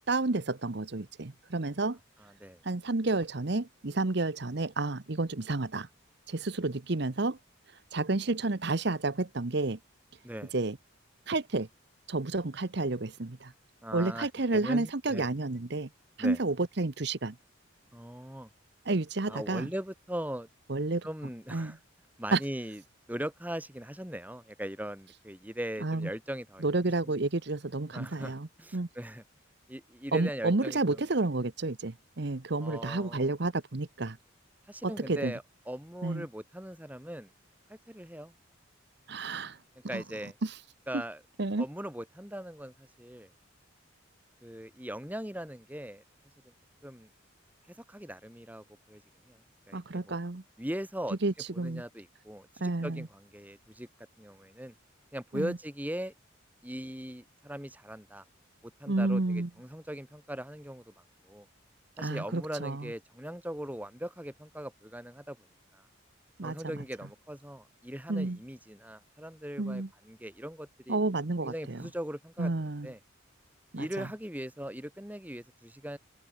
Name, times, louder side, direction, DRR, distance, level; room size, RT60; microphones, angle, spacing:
voice 1, 0.1-2.0 2.6-5.9 6.3-7.4 7.9-9.8 10.5-10.8 11.3-11.7 12.1-13.5 13.9-15.9 16.2-17.3 18.8-19.7 20.7-21.1 21.5-21.7 22.3-22.4 25.8-26.1 26.6-28.5 28.7-28.9 30.1-34.2 34.8-35.3 36.0-36.2 39.1-39.6 39.9-40.0 40.4-40.6 40.9-41.0 41.4-41.6 49.7-50.4 51.2-51.8 52.6-53.1 55.3-55.6 58.9-59.5 62.0-62.9 66.4-66.6 68.1-68.4 69.6-69.9 70.9-71.8 72.4-72.9 73.7-74.1, right 2 dB, 55° right, 1.0 m, -30 dB
voice 2, 2.2-2.6 10.2-10.5 13.8-15.3 16.2-16.4 17.9-18.5 19.3-20.5 21.0-21.8 22.2-22.8 23.1-26.7 27.0-27.1 27.9-29.2 29.7-31.0 32.6-33.3 34.7-37.3 37.7-38.3 39.9-40.3 40.9-41.2 41.6-43.3 44.4-46.0 46.8-47.1 47.9-49.0 49.3-49.4 49.7-50.2 50.6-51.2 51.5-53.9 54.2-54.7 55.1-56.1 56.6-58.2 58.6-60.8 61.2-61.5 62.0-65.4 65.7-65.8 66.4-71.0 71.4-73.0 73.7-76.0, equal, 10° right, 2.9 m, -40 dB
open air
head